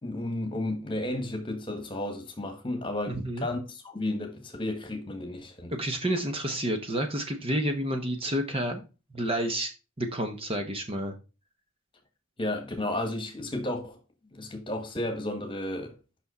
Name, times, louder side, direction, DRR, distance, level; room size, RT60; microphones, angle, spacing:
voice 1, 0.0-5.7 12.4-14.0 14.3-15.9, left 1 dB, 25° left, 1.5 m, -33 dB
voice 2, 3.1-3.5 5.7-8.8 9.1-9.7 10.0-11.1, right 1 dB, 25° right, 0.9 m, -30 dB
6.1 x 6.0 x 4.2 m
head